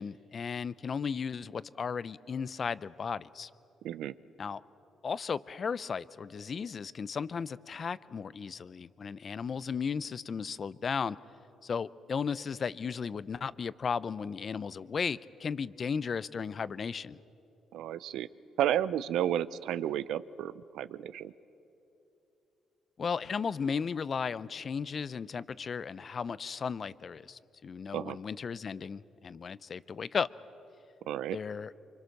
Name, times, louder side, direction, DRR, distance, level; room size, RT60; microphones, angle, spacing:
voice 1, 0.0-3.5 4.4-4.6 5.0-11.2 11.6-17.2 23.0-30.3 31.3-31.7, left 6 dB, 45° left, 18 dB, 0.5 m, -35 dB
voice 2, 17.7-18.3 18.6-21.3 27.9-28.2 31.1-31.4, right 11 dB, 85° right, 16 dB, 0.5 m, -32 dB
25.0 x 25.0 x 6.5 m, 2.9 s
cardioid pair, 90°, 0 cm